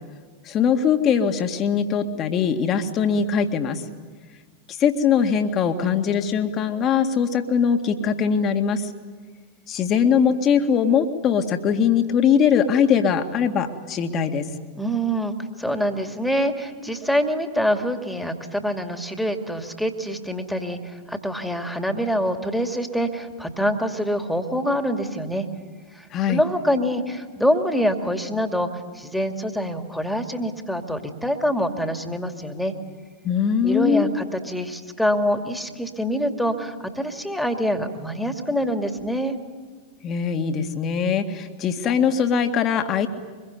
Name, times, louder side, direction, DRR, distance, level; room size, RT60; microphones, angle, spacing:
voice 1, 0.4-3.8 4.7-8.9 9.7-14.5 26.1-26.4 33.2-34.1 40.0-43.1, left 7 dB, 30° left, 6 dB, 2.0 m, -21 dB
voice 2, 14.7-25.5 25.9-28.7 28.9-32.7 33.6-39.3, equal, ahead, 6 dB, 2.4 m, -25 dB
24.5 x 22.5 x 9.7 m, 1.5 s
figure-of-eight pair, 90°, 0 cm